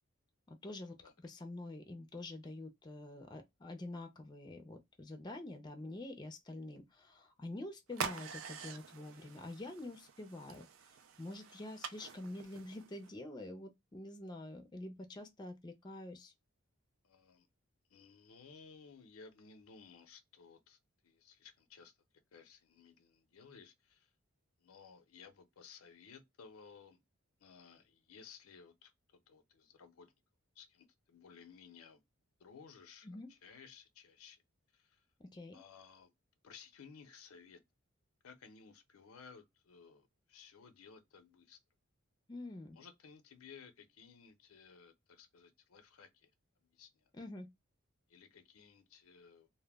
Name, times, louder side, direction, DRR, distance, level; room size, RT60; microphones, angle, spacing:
voice 1, 0.5-1.0 1.2-16.3 33.0-33.3 35.2-35.6 42.3-42.8 47.1-47.5, left 2 dB, 20° left, 0.4 m, -47 dB
sound 1, 7.9-13.1, right 6 dB, 70° right, 0.4 m, -46 dB
voice 2, 17.0-17.5 17.9-21.9 22.3-24.1 24.6-27.0 27.4-30.1 30.6-32.0 32.4-34.4 34.7-35.1 35.5-36.1 36.4-37.6 38.2-41.6 42.7-46.3 46.6-47.1 48.1-49.5, left 6 dB, 90° left, 0.5 m, -58 dB
2.1 x 2.0 x 3.3 m
head